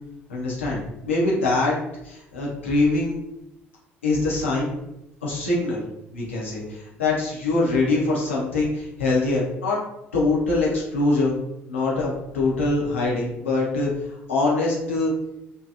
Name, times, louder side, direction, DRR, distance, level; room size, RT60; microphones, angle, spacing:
voice 1, 0.3-1.8 2.0-3.2 4.0-4.7 5.2-5.8 6.1-9.8 10.1-11.3 11.7-13.9 14.3-15.1, left 2 dB, 80° left, -5 dB, 0.7 m, -23 dB
2.8 x 2.3 x 2.4 m, 0.88 s
figure-of-eight pair, 55°, 7 cm